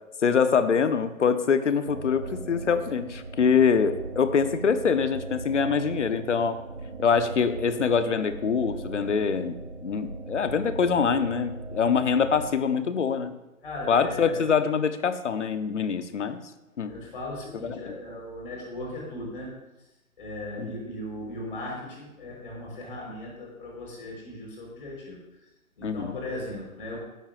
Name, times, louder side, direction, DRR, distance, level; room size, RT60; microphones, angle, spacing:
voice 1, 0.2-6.6 7.0-9.5 9.8-13.3 13.9-16.4 16.8-16.9 17.6-18.0 20.6-20.7 25.8-26.1, left 6 dB, 55° left, 11 dB, 0.9 m, -24 dB
sound 1, 1.9-12.5, right 3 dB, 35° right, 1.2 m, -38 dB
voice 2, 13.6-14.5 16.9-19.5 20.2-25.2 25.8-27.0, left 1 dB, 35° left, -3 dB, 4.3 m, -37 dB
15.0 x 11.0 x 2.5 m, 0.99 s
hypercardioid pair, 175°, 43 cm